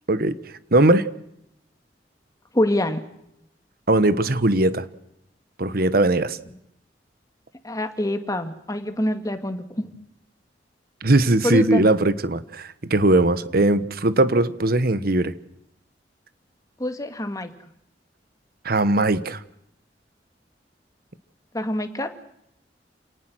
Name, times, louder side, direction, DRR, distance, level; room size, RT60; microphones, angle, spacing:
voice 1, 0.1-0.4 0.7-1.1 3.9-4.9 5.6-6.4 11.0-15.3 18.6-19.4, right 2 dB, 60° right, 14 dB, 1.3 m, -19 dB
voice 2, 2.5-3.0 7.6-9.9 11.4-11.8 16.8-17.5 21.5-22.1, left 1 dB, 20° left, 7 dB, 2.1 m, -25 dB
28.5 x 19.0 x 6.3 m, 0.77 s
head